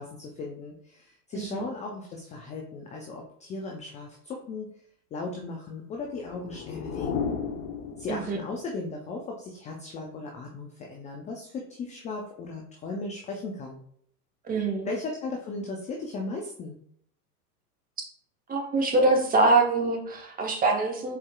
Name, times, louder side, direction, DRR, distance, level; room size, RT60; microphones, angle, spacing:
voice 1, 0.0-4.7 5.1-7.3 8.0-13.8 14.9-16.8, left 3 dB, 15° left, 0 dB, 0.4 m, -37 dB
voice 2, 1.3-1.7 8.1-8.4 14.4-14.9 18.5-21.2, right 3 dB, 20° right, 2 dB, 1.0 m, -24 dB
sound 1, 6.0-8.7, left 6 dB, 45° left, 0.8 m, -34 dB
4.8 x 4.3 x 2.3 m, 0.64 s
hypercardioid pair, 105°, 47 cm